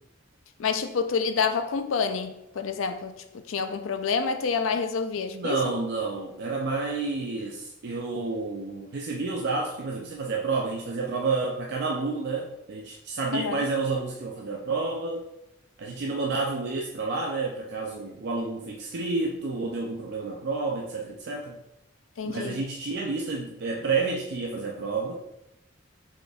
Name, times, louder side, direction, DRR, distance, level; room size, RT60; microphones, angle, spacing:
voice 1, 0.6-3.1 3.5-5.6 13.3-13.7 22.2-22.6, left 5 dB, 85° left, 9 dB, 0.4 m, -28 dB
voice 2, 5.3-15.3 15.8-21.6 22.2-25.2, right 3 dB, 55° right, -1 dB, 0.4 m, -30 dB
4.9 x 4.2 x 2.3 m, 0.86 s
head